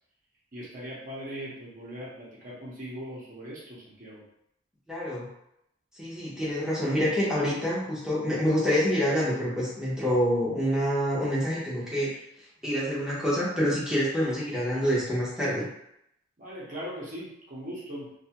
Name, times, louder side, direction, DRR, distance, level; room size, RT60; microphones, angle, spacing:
voice 1, 0.5-4.2 16.4-18.1, equal, 40° right, -6 dB, 0.8 m, -40 dB
voice 2, 4.9-5.3 6.0-12.1 12.6-15.6, equal, 5° right, -8 dB, 0.8 m, -27 dB
2.7 x 2.3 x 2.8 m, 0.79 s
head